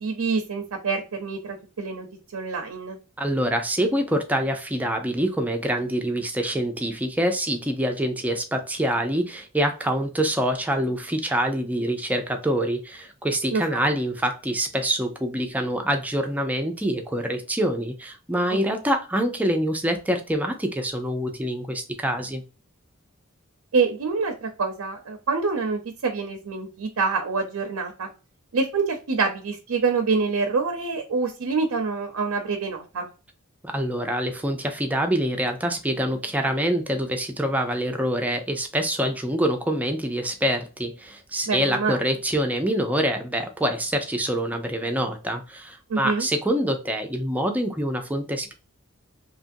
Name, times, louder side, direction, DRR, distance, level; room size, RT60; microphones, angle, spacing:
voice 1, 0.0-2.1 2.3-3.0 13.5-13.9 23.7-28.1 28.5-33.1 41.5-42.0 45.9-46.3, right 4 dB, 90° right, 5 dB, 0.6 m, -26 dB
voice 2, 3.2-22.4 33.6-48.5, equal, 5° right, 4 dB, 0.5 m, -25 dB
2.9 x 2.5 x 2.5 m, 0.33 s
head